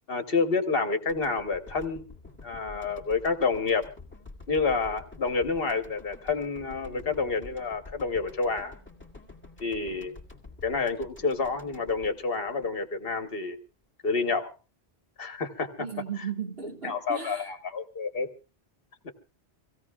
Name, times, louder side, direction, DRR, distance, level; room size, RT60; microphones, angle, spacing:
voice 1, 0.1-2.0 2.4-3.8 4.5-8.7 9.6-10.2 10.6-13.6 14.0-14.5 15.2-15.9 16.8-18.3 19.0-19.1, left 4 dB, 60° left, 1.3 m, -29 dB
sound 1, 1.1-13.3, left 3 dB, 10° left, 2.2 m, -49 dB
voice 2, 15.8-17.5, right 7 dB, 65° right, 1.9 m, -36 dB
25.0 x 16.5 x 2.3 m
omnidirectional pair, 1.1 m